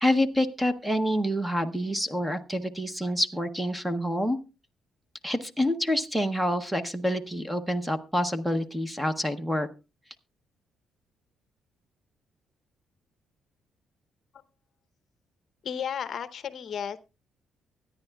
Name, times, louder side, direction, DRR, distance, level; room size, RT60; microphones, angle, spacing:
voice 1, 0.0-4.4 5.2-9.7, equal, 5° right, 10 dB, 0.7 m, -27 dB
voice 2, 15.6-17.0, left 8 dB, 45° left, 13 dB, 0.7 m, -33 dB
24.0 x 9.8 x 2.3 m, 0.29 s
cardioid pair, 175°, 0 cm